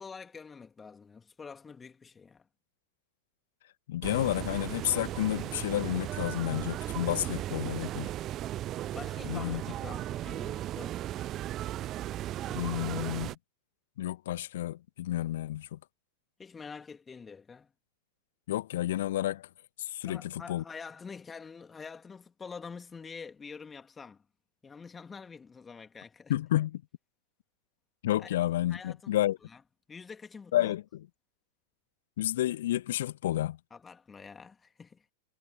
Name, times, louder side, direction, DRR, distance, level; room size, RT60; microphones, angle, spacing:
voice 1, 0.0-2.5 8.9-11.0 16.4-17.7 20.0-24.2 24.6-26.3 28.2-28.3 28.7-29.6 29.9-30.7 33.7-35.0, left 5 dB, 15° left, 3.1 m, -46 dB
voice 2, 3.9-8.1 9.2-9.6 12.5-13.4 14.0-15.8 18.5-19.5 19.8-20.6 26.3-26.8 28.0-29.4 30.5-31.1 32.2-33.6, left 13 dB, 55° left, 1.5 m, -30 dB
sound 1, 4.0-13.3, right 13 dB, 30° right, 0.4 m, -36 dB
figure-of-eight pair, 90°, 0 cm